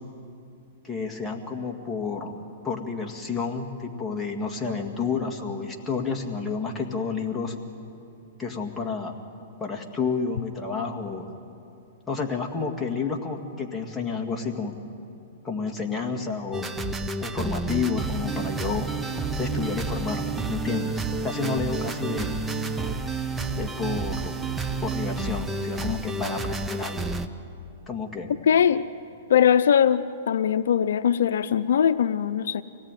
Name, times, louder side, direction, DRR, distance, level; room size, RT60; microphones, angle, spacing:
voice 1, 0.8-2.4 2.6-7.5 8.4-9.1 9.6-11.3 12.1-14.7 15.4-16.7 17.2-18.9 19.4-22.3 23.5-24.4 24.8-27.1 27.9-28.3, left 5 dB, 10° left, 1 dB, 2.0 m, -30 dB
sound 1, 16.5-27.3, right 3 dB, 10° right, 0.8 m, -30 dB
voice 2, 28.5-28.8 29.3-32.6, left 8 dB, 80° left, 12 dB, 0.6 m, -21 dB
25.0 x 18.0 x 9.2 m, 2.6 s
hypercardioid pair, 145°, 0 cm